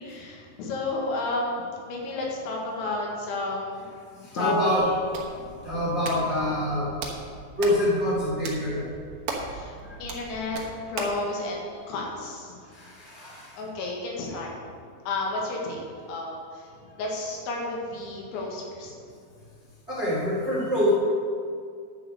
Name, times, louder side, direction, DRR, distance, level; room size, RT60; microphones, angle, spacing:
voice 1, 0.0-3.8 4.2-4.8 5.3-5.5 9.5-12.6 13.6-14.5 15.1-15.8 16.1-16.7 17.0-18.9, left 2 dB, 85° left, -2 dB, 4.2 m, -32 dB
voice 2, 4.2-4.9 5.6-6.9 7.6-8.9 12.7-13.5 19.9-20.9, equal, 30° right, -6 dB, 1.3 m, -25 dB
Hands, 4.8-11.2, right 4 dB, 65° right, 2.4 m, -39 dB
11.0 x 6.0 x 7.8 m, 2.3 s
omnidirectional pair, 5.2 m